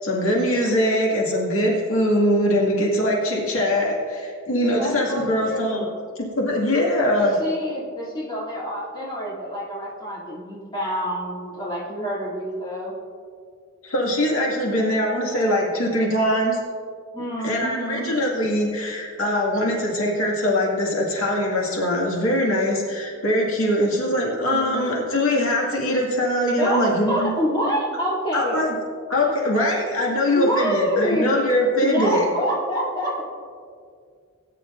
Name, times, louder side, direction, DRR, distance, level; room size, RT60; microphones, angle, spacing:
voice 1, 0.0-5.8 6.4-7.3 13.8-16.6 17.4-27.3 28.3-28.7 29.1-32.3, left 1 dB, 75° left, -3 dB, 2.2 m, -22 dB
voice 2, 4.7-5.9 7.1-12.9 17.1-18.1 24.5-24.9 26.6-28.6 30.3-31.3 31.8-33.2, equal, 20° left, -7 dB, 2.8 m, -27 dB
18.5 x 9.7 x 2.6 m, 2.2 s
head